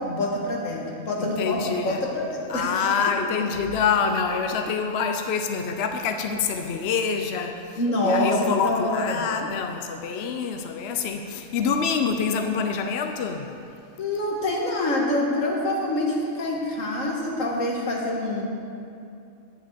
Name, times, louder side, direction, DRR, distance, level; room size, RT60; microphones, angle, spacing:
voice 1, 0.0-2.8 7.8-9.2 14.0-18.4, left 1 dB, 80° left, -2 dB, 2.0 m, -26 dB
voice 2, 1.2-2.0 2.5-13.5, left 6 dB, 60° left, 5 dB, 0.8 m, -26 dB
8.8 x 7.2 x 8.2 m, 2.6 s
omnidirectional pair, 1.3 m